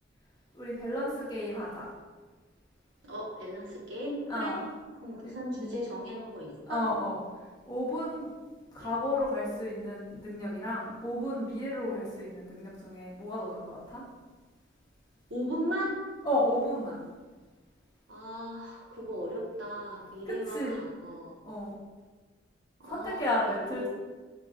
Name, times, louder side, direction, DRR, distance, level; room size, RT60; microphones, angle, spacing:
voice 1, 0.5-1.9 4.3-4.6 5.2-5.7 6.7-7.2 7.7-8.3 8.7-14.0 16.2-17.0 20.3-20.8 21.4-21.7 22.9-23.9, left 1 dB, 20° left, -6 dB, 0.9 m, -33 dB
voice 2, 3.0-4.6 5.0-6.8 8.8-8.9 15.3-16.0 18.1-21.4 22.8-23.9, equal, 75° right, -4 dB, 1.1 m, -37 dB
5.2 x 2.2 x 3.6 m, 1.3 s
head